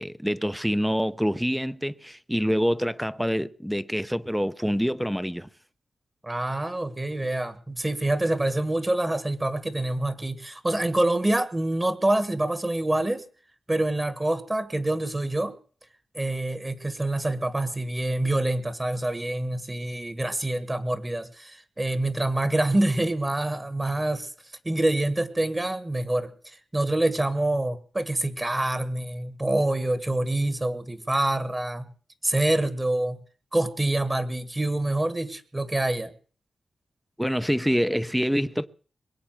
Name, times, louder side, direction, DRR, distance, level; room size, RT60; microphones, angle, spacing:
voice 1, 0.0-5.5 37.2-38.7, equal, ahead, 0.7 m, -26 dB
voice 2, 6.2-13.2 13.7-15.5 16.1-24.3 24.6-31.9 32.2-33.2 33.5-36.1, right 1 dB, 20° right, 1.5 m, -26 dB
21.5 x 8.4 x 7.5 m
wide cardioid pair, 85°, 0 cm